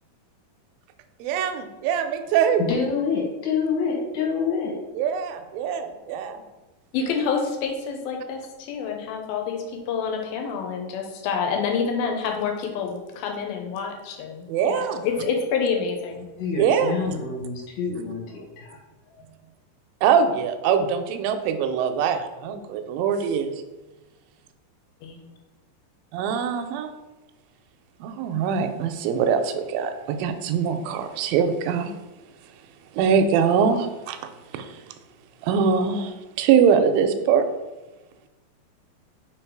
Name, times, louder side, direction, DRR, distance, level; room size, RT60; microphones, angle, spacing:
voice 1, 1.2-2.6 5.0-6.4 14.5-15.0 16.6-16.9 20.0-23.5 26.1-26.9 28.0-31.9 32.9-34.2 34.5-34.7 35.4-37.4, right 7 dB, 80° right, 7 dB, 2.1 m, -23 dB
voice 2, 2.7-4.7 16.4-18.8 19.1-19.2, left 5 dB, 60° left, -2 dB, 2.5 m, -27 dB
voice 3, 6.9-16.3 25.0-25.2, left 5 dB, 85° left, 3 dB, 2.6 m, -28 dB
5.3 x 3.9 x 4.6 m, 1.1 s
omnidirectional pair, 4.3 m